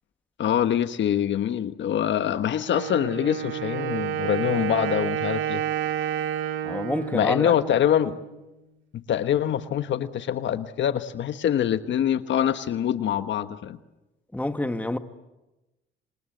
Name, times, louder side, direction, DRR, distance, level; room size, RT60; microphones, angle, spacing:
voice 1, 0.4-5.6 7.1-8.2 8.9-13.8, left 10 dB, 70° left, 1.3 m, -24 dB
Wind instrument woodwind instrument, 2.7-8.4, right 11 dB, 90° right, 2.3 m, -30 dB
voice 2, 6.6-7.5 14.3-15.0, left 1 dB, 5° left, 1.7 m, -28 dB
27.0 x 27.0 x 7.9 m
cardioid pair, 90°, 20 cm